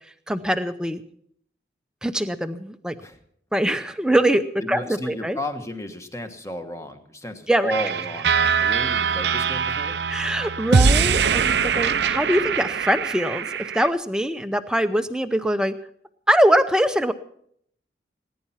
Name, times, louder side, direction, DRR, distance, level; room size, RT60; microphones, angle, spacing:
voice 1, 0.3-1.0 2.0-2.9 3.5-5.4 7.5-7.7 10.1-15.7 16.3-17.1, equal, 5° right, 9 dB, 0.7 m, -23 dB
voice 2, 4.6-10.0, equal, 15° left, 7 dB, 1.3 m, -33 dB
sound 1, 7.7-13.9, right 6 dB, 70° right, 0.6 m, -22 dB
19.0 x 10.0 x 5.7 m, 0.66 s
head